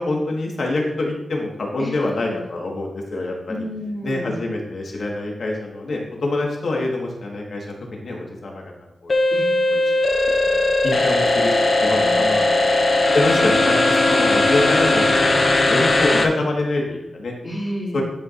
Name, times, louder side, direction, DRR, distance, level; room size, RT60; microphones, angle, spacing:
voice 1, 0.0-3.6 4.0-8.6 9.0-9.1 9.7-9.9 10.5-10.6 10.8-12.5 13.1-17.3 17.9-18.0, left 2 dB, 70° left, -1 dB, 1.5 m, -25 dB
voice 2, 1.8-2.4 3.5-4.4 9.3-9.9 11.9-12.7 17.4-18.0, equal, 35° left, -10 dB, 2.7 m, -32 dB
sound 1, 9.1-16.3, left 2 dB, 50° left, 0.7 m, -18 dB
11.0 x 4.6 x 2.5 m, 0.90 s
wide cardioid pair, 85°, 0 cm